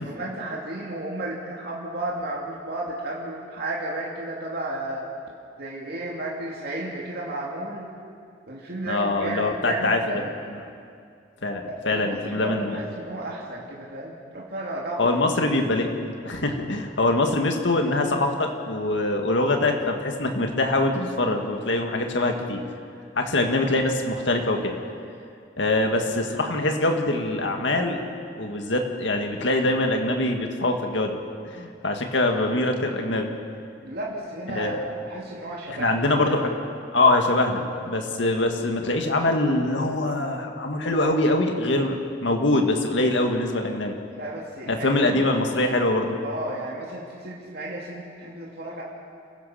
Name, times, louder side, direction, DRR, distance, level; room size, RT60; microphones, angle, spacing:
voice 1, 0.0-5.1 5.6-7.9 8.5-10.3 11.7-15.2 33.8-36.4 44.1-45.2 46.2-48.8, right 1 dB, 55° right, -3 dB, 2.5 m, -33 dB
voice 2, 8.9-10.2 10.5-10.6 11.4-12.8 15.0-15.9 16.2-22.6 23.2-24.7 25.6-28.0 28.3-31.2 31.5-33.3 34.5-34.8 35.7-36.5 36.9-43.9 44.7-46.2, left 2 dB, 75° left, 3 dB, 2.0 m, -23 dB
29.0 x 15.5 x 5.8 m, 2.3 s
head